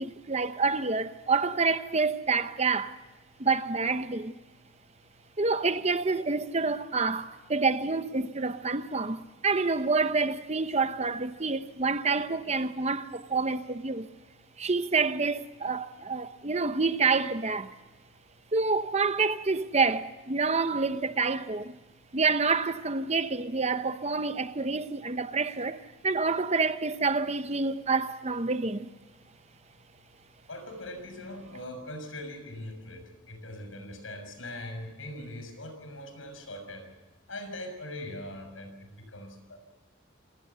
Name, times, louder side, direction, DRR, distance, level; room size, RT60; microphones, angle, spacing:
voice 1, 0.0-3.0 3.4-4.3 5.4-14.1 14.6-17.7 18.5-21.8 22.1-28.9, right 4 dB, 35° right, 0.9 m, -28 dB
voice 2, 30.5-36.9 37.3-39.7, left 1 dB, 85° left, 6.3 m, -41 dB
27.5 x 19.5 x 6.9 m
head